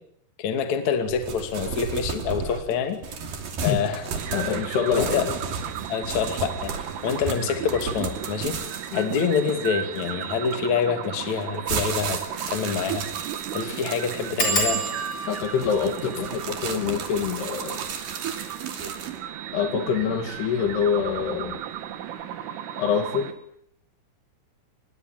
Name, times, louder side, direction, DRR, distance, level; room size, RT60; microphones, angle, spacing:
voice 1, 0.4-3.0 3.6-4.0 4.3-4.4 4.9-5.3 5.9-8.6 8.9-12.2 12.5-14.8, left 6 dB, 45° left, 6 dB, 3.2 m, -26 dB
sound 1, 1.1-10.5 11.2-19.2, right 5 dB, 50° right, 4.0 m, -34 dB
sound 2, 4.1-23.3, right 10 dB, 90° right, 4.6 m, -35 dB
voice 2, 4.3-5.3 8.9-9.1 15.3-17.8 19.5-21.6 22.8-23.4, left 7 dB, 60° left, 7 dB, 3.9 m, -26 dB
sound 3, 11.3-11.4 11.8-11.9 12.1-12.2 12.8-13.1 13.3-13.4 14.4-19.6 20.3-20.8 21.2-21.5 21.8-21.9, right 2 dB, 20° left, 5.3 m, -32 dB
25.0 x 21.5 x 9.2 m, 0.69 s
omnidirectional pair, 5.6 m